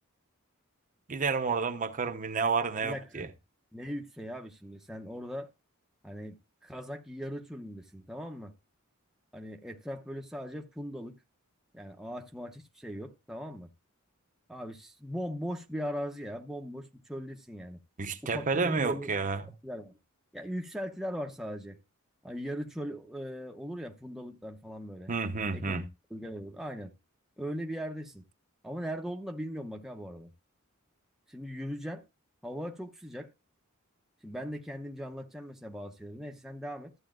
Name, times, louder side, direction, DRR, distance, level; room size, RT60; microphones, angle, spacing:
voice 1, 1.1-3.3 18.0-19.4 25.1-25.9, right 4 dB, 35° right, 0.7 m, -30 dB
voice 2, 2.8-3.3 3.7-5.5 6.0-6.3 6.6-8.5 9.3-11.2 11.7-13.7 14.5-17.8 18.2-19.3 19.6-20.0 20.3-21.8 22.2-25.1 25.5-25.8 26.1-26.9 27.4-28.2 28.6-30.3 31.3-32.0 32.4-33.3 34.2-36.9, equal, ahead, 0.8 m, -39 dB
13.5 x 8.2 x 2.4 m
head